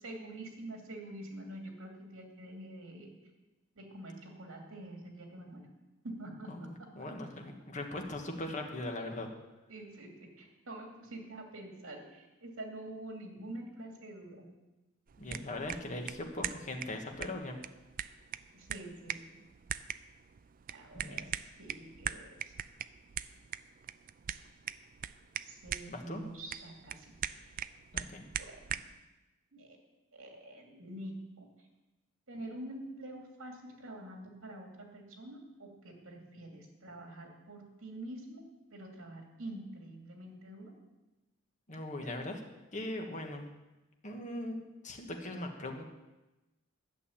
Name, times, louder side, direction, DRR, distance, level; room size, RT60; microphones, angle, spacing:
voice 1, 0.0-3.1 3.8-5.7 6.0-6.9 9.7-14.5 18.5-19.4 20.7-22.5 25.4-27.1 27.4-27.5 28.1-28.8 29.5-29.8 30.1-31.5 32.3-38.4 38.7-40.7 42.0-42.1, right 1 dB, 70° right, 1 dB, 2.7 m, -46 dB
voice 2, 6.5-9.3 15.2-17.6 20.9-21.2 25.9-26.2 27.9-28.2 41.7-42.4 42.7-43.4 44.0-45.8, left 1 dB, 35° left, 3 dB, 1.7 m, -40 dB
sound 1, 15.1-29.0, right 9 dB, 40° right, 0.4 m, -42 dB
11.5 x 6.8 x 8.8 m, 1.1 s
head